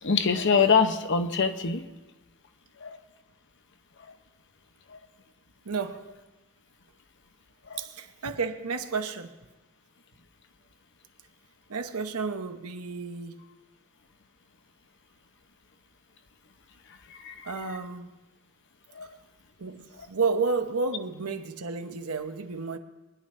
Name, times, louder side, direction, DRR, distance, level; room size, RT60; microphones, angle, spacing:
voice 1, 0.0-1.8 2.8-3.0 4.9-5.0 7.7-7.8 17.1-17.5 18.9-19.1, left 5 dB, 55° left, 0.9 m, -24 dB
voice 2, 5.6-6.1 7.8-9.3 11.7-13.4 17.4-18.1 19.6-22.8, right 4 dB, 90° right, 1.0 m, -31 dB
23.5 x 10.5 x 3.3 m
head